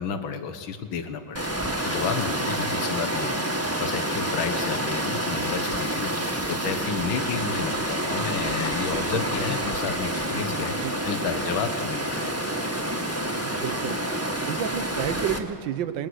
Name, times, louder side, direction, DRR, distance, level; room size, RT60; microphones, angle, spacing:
voice 1, 0.0-3.4 3.8-6.1 6.5-10.7 11.0-12.4, left 6 dB, 80° left, 8 dB, 2.2 m, -31 dB
Water, 1.3-15.4, right 1 dB, 10° right, 1.6 m, -28 dB
voice 2, 13.4-14.0 14.4-16.1, right 9 dB, 70° right, 13 dB, 1.6 m, -30 dB
28.5 x 21.0 x 6.4 m, 2.3 s
omnidirectional pair, 2.2 m